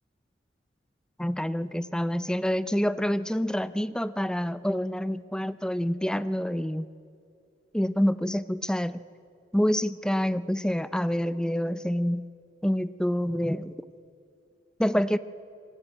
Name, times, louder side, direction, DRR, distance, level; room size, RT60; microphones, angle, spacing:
voice 1, 1.2-6.9 7.7-9.0 9.5-12.2 12.6-13.8 14.8-15.2, equal, 5° left, 14 dB, 0.5 m, -27 dB
26.5 x 19.5 x 8.9 m, 2.5 s
head